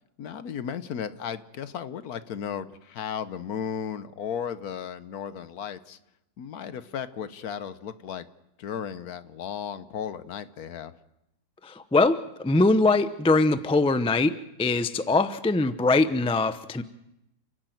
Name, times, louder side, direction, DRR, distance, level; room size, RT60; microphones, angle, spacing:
voice 1, 0.2-6.0 6.4-8.3 8.6-10.9, left 8 dB, 70° left, 13 dB, 1.4 m, -35 dB
voice 2, 11.6-14.3 14.6-16.8, left 3 dB, 10° left, 12 dB, 0.3 m, -22 dB
30.0 x 10.5 x 9.2 m, 0.87 s
omnidirectional pair, 1.6 m